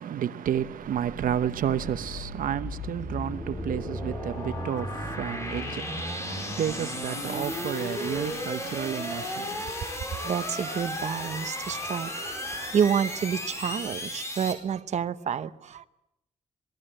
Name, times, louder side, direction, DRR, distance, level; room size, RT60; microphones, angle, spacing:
voice 1, 0.0-9.6, right 9 dB, 85° right, 0.9 m, -31 dB
sound 1, 0.8-14.5, left 1 dB, 20° left, 4.7 m, -35 dB
voice 2, 10.1-15.9, right 8 dB, 55° right, 1.0 m, -29 dB
27.0 x 19.0 x 8.9 m
wide cardioid pair, 180°, 14 cm